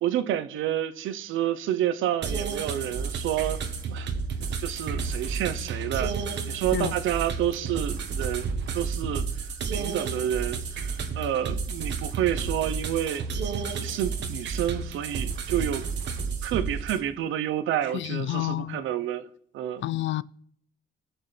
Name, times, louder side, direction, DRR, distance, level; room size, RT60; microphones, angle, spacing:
voice 1, 0.0-4.1 4.6-6.2 6.5-13.2 13.7-15.9 16.4-19.3 19.5-19.8, right 11 dB, 85° right, 0.8 m, -29 dB
sound 1, 2.2-17.0, right 5 dB, 65° right, 1.2 m, -31 dB
voice 2, 17.9-18.8 19.8-20.2, left 14 dB, 70° left, 0.4 m, -29 dB
18.5 x 6.5 x 3.3 m
cardioid pair, 90°, 20 cm